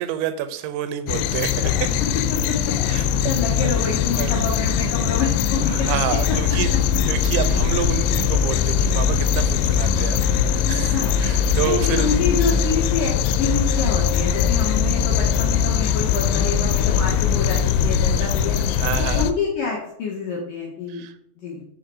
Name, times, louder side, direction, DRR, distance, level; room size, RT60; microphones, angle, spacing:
voice 1, 0.0-1.9 2.9-3.3 3.6-3.7 4.2-4.4 5.7-6.7 7.1-10.2 10.5-10.9 11.2-12.2 18.8-19.3 20.9-21.1, right 11 dB, 80° right, 11 dB, 3.0 m, -28 dB
sound 1, 1.1-19.3, left 7 dB, 85° left, 3.0 m, -21 dB
voice 2, 2.3-3.0 3.3-5.9 7.4-7.6 10.6-11.1 11.7-21.0 21.4-21.6, left 5 dB, 70° left, -3 dB, 2.2 m, -27 dB
6.6 x 6.4 x 4.8 m, 0.73 s
omnidirectional pair, 5.3 m